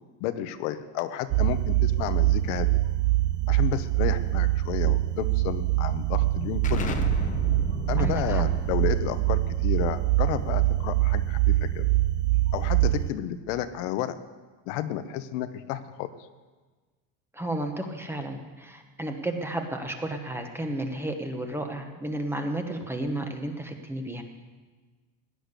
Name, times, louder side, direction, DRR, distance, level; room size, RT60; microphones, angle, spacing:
voice 1, 0.2-2.8 3.5-7.0 7.9-11.9 12.5-14.2 14.7-16.1, left 11 dB, 70° left, 11 dB, 1.0 m, -31 dB
sound 1, 1.3-13.1, right 17 dB, 40° right, 0.4 m, -24 dB
Explosion, 6.6-12.0, left 5 dB, 20° left, 0.9 m, -36 dB
voice 2, 8.0-8.4 17.3-24.2, right 1 dB, 5° right, 4 dB, 1.0 m, -32 dB
16.5 x 10.0 x 6.7 m, 1.4 s
cardioid pair, 165°, 39 cm